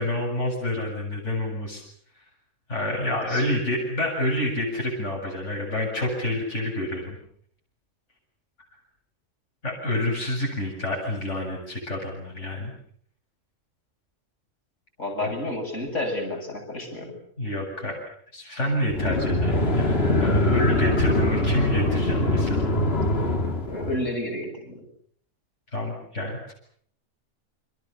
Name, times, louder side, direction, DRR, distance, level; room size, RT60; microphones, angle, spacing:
voice 1, 0.0-1.8 2.7-7.2 9.6-12.7 15.2-15.3 16.9-17.1 17.4-17.9 18.3-22.7 25.7-26.5, left 1 dB, 70° left, -1 dB, 8.2 m, -28 dB
voice 2, 15.0-17.1 23.7-24.9, left 1 dB, 85° left, 1 dB, 8.2 m, -30 dB
sound 1, 18.9-24.1, left 1 dB, 55° left, 3.2 m, -23 dB
29.5 x 25.5 x 6.9 m, 0.62 s
omnidirectional pair, 1.3 m